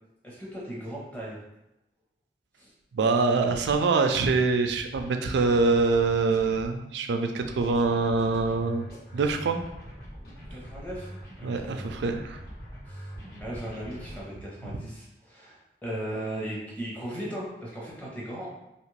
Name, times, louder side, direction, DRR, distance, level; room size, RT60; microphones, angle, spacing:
voice 1, 0.2-1.4 2.6-2.7 10.5-11.9 12.9-13.1 13.4-18.5, right 1 dB, 10° left, -5 dB, 0.7 m, -37 dB
voice 2, 2.9-8.9 9.1-9.6 11.4-12.4 14.6-14.7, right 4 dB, 85° right, 6 dB, 0.3 m, -24 dB
sound 1, 3.4-3.8 4.9-6.8 7.4-14.2, equal, 65° left, 1.1 m, -43 dB
2.9 x 2.4 x 3.1 m, 0.89 s
head